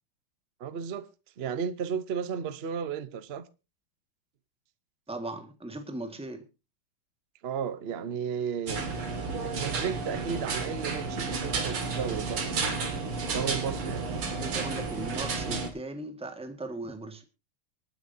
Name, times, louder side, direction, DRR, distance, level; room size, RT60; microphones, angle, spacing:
voice 1, 0.6-1.1 1.4-3.4 7.4-8.8 9.4-12.4 13.3-14.0, right 7 dB, 55° right, 0.7 m, -33 dB
voice 2, 5.1-6.4 14.3-17.2, right 2 dB, 5° right, 1.5 m, -38 dB
sound 1, 8.7-15.7, right 4 dB, 85° right, 3.1 m, -32 dB
24.5 x 9.5 x 2.7 m
omnidirectional pair, 2.3 m